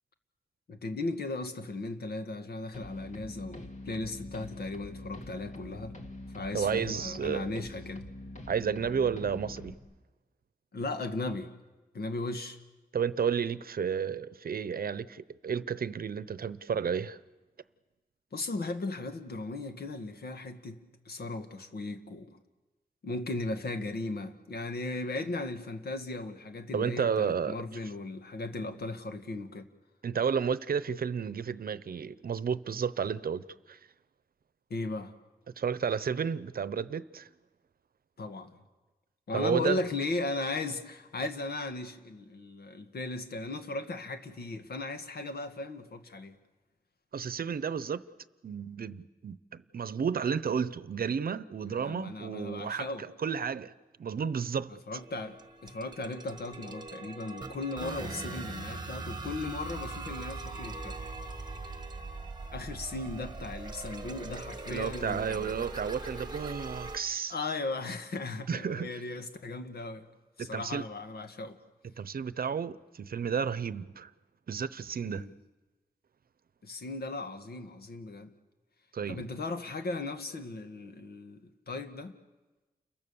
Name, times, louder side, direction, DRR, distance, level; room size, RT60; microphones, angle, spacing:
voice 1, 0.7-6.0 6.3-8.0 10.7-11.5 11.9-12.6 18.3-22.4 23.0-29.7 34.7-35.1 38.2-38.5 39.3-46.4 51.8-53.1 54.7-61.0 62.5-65.5 67.3-70.1 70.4-71.6 75.0-75.3 76.6-78.3 79.1-82.2, left 2 dB, 85° left, 1.7 m, -37 dB
sound 1, 2.7-9.7, left 1 dB, 50° left, 2.5 m, -44 dB
voice 2, 6.5-7.5 8.5-9.7 12.9-17.2 26.7-27.5 30.0-33.8 35.6-37.3 39.3-39.8 47.1-48.0 48.4-53.7 54.0-54.7 64.7-67.3 68.5-68.9 70.4-70.8 72.0-74.1 74.5-75.2 78.9-79.2, right 7 dB, 70° right, 0.8 m, -32 dB
sound 2, 54.9-67.0, right 3 dB, 25° right, 1.6 m, -41 dB
29.5 x 23.0 x 7.1 m
wide cardioid pair, 110°, 16 cm